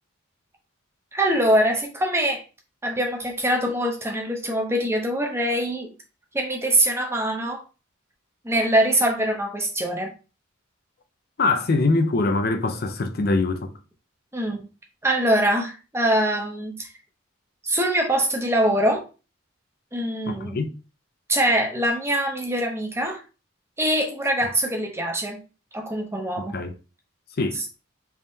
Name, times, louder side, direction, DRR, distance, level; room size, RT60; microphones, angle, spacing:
voice 1, 1.1-2.4 2.8-5.9 6.3-7.6 8.4-10.1 14.3-14.7 15.0-16.9 17.6-19.0 19.9-20.6 21.3-23.2 23.8-25.4 25.7-26.6, right 1 dB, 10° right, 0.7 m, -23 dB
voice 2, 11.4-13.7 20.3-20.8 26.4-26.7 27.4-27.6, left 3 dB, 50° left, 0.5 m, -23 dB
3.6 x 3.2 x 2.7 m
head